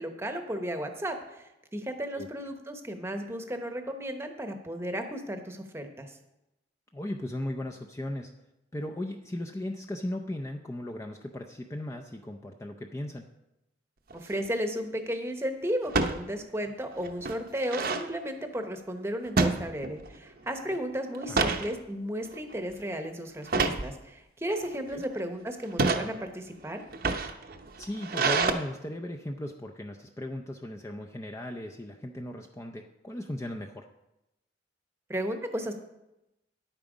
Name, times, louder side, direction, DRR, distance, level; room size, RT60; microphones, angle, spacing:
voice 1, 0.0-1.4 1.7-6.1 14.1-26.8 35.1-35.7, equal, 15° right, 6 dB, 0.9 m, -34 dB
voice 2, 6.9-8.3 8.7-13.3 21.3-21.5 24.9-25.0 27.8-33.8, left 1 dB, 15° left, 2 dB, 0.5 m, -37 dB
sound 1, 14.1-14.5 15.9-16.2 16.7-16.8 17.0-18.1 19.4-20.2 20.5-20.7 21.1-21.7 22.3-22.5 23.5-23.9 24.6-25.1 25.6-26.1 26.8-28.5, right 4 dB, 50° right, 0.8 m, -27 dB
10.5 x 9.0 x 5.0 m, 0.93 s
head